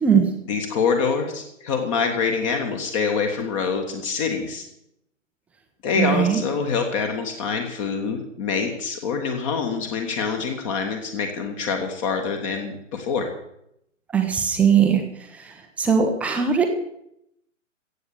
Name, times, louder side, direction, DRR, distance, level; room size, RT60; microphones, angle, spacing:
voice 1, 0.5-4.6 5.8-13.3, left 5 dB, 25° left, 4 dB, 1.5 m, -25 dB
voice 2, 5.9-6.4 14.1-15.0 15.3-16.7, right 7 dB, 5° right, 4 dB, 0.8 m, -20 dB
15.0 x 8.3 x 6.7 m, 0.77 s
figure-of-eight pair, 130°, 38 cm